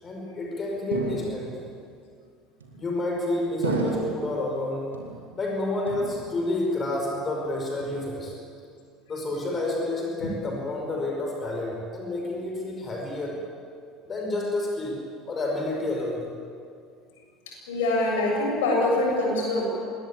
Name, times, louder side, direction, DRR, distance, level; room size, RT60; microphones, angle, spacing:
voice 1, 0.0-1.6 2.8-5.0 5.4-8.3 9.1-13.4 14.0-16.3, left 2 dB, 30° left, 0 dB, 5.3 m, -29 dB
sound 1, 0.9-1.8 2.6-3.1 3.6-4.4 4.9-5.6 5.9-6.6 6.9-7.4 7.8-8.4, right 4 dB, 75° right, 2.7 m, -33 dB
voice 2, 17.7-19.7, left 2 dB, 65° left, -1 dB, 7.4 m, -24 dB
25.5 x 20.5 x 8.7 m, 2.3 s
figure-of-eight pair, 65°, 0 cm